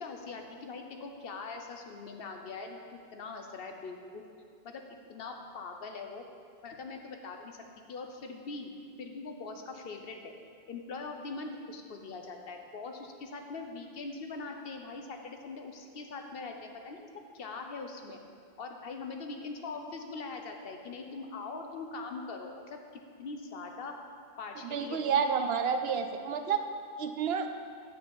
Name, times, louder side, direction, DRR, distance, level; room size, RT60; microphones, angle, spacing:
voice 1, 0.0-4.2 4.6-4.8 5.1-6.2 6.6-7.6 7.9-8.7 9.0-10.3 10.7-18.2 18.6-22.8 23.2-24.0 24.4-25.2, left 4 dB, 70° left, 4 dB, 1.0 m, -42 dB
voice 2, 24.7-26.6 27.0-27.5, right 6 dB, 75° right, 7 dB, 0.8 m, -29 dB
8.4 x 7.3 x 4.3 m, 2.2 s
omnidirectional pair, 1.0 m